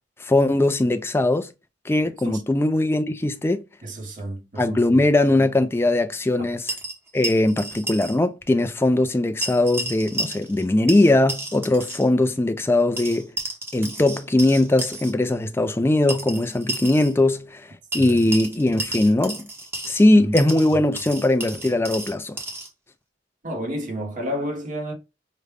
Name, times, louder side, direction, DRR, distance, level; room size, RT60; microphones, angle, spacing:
voice 1, 0.2-1.5 1.9-3.6 4.6-6.7 7.1-13.3 13.7-17.7 17.9-19.5 19.9-22.4, left 2 dB, 15° left, 0.3 m, -20 dB
voice 2, 3.8-4.8 18.0-18.2 20.4-20.5 23.4-24.9, equal, 45° right, 0.8 m, -30 dB
sound 1, 6.7-8.2 8.4-8.5 9.4-10.6 10.9-12.1 13.0-15.1 16.1-17.1 17.9-20.1 20.4-22.7, right 2 dB, 15° right, 0.9 m, -32 dB
4.8 x 2.1 x 3.3 m
head